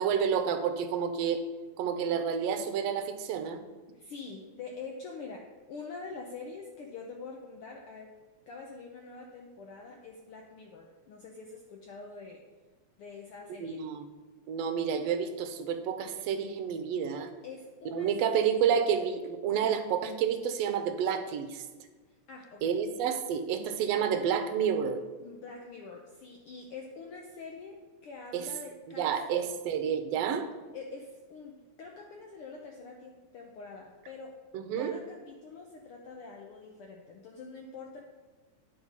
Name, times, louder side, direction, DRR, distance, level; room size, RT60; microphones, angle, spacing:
voice 1, 0.0-1.4 1.8-3.6 13.6-14.0 14.5-17.3 17.8-21.6 22.6-25.0 28.3-28.5 29.0-30.5 34.5-35.0, right 7 dB, 70° right, 8 dB, 1.6 m, -29 dB
voice 2, 3.9-8.1 8.5-12.4 13.0-13.8 17.4-18.1 19.5-19.8 22.1-22.8 25.2-29.4 30.7-34.3 34.8-38.0, left 4 dB, 80° left, 1 dB, 1.2 m, -45 dB
9.9 x 4.1 x 5.9 m, 1.3 s
omnidirectional pair, 3.4 m